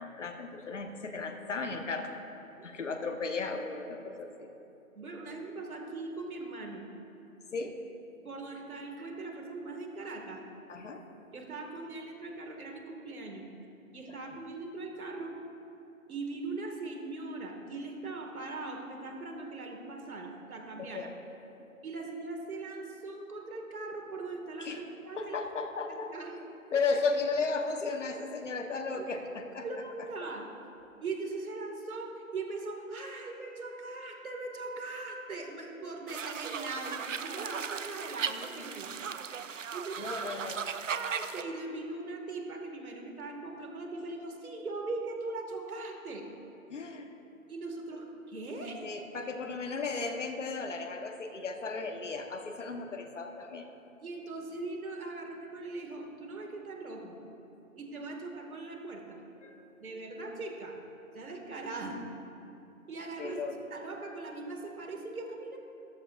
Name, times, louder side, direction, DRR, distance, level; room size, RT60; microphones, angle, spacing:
voice 1, 0.0-2.1 2.6-4.5 7.5-7.8 10.7-11.0 14.1-14.2 20.8-21.1 24.6-24.8 25.1-26.1 26.7-29.7 40.0-40.7 46.7-47.1 48.8-53.7 59.4-59.6 63.2-63.6, left 4 dB, 55° left, 4 dB, 1.2 m, -35 dB
voice 2, 5.0-6.8 8.2-10.4 11.3-13.5 13.9-15.3 16.1-21.1 21.8-25.4 25.9-26.4 29.0-29.1 29.6-30.4 31.0-38.9 39.7-40.2 40.9-46.3 47.5-48.8 54.0-57.2 57.8-59.2 59.8-60.8 61.1-62.0 62.9-65.6, right 3 dB, 75° right, 2 dB, 2.1 m, -40 dB
sound 1, 36.1-41.4, right 7 dB, 60° right, 0.6 m, -37 dB
13.5 x 12.5 x 2.5 m, 2.9 s
hypercardioid pair, 170°, 43 cm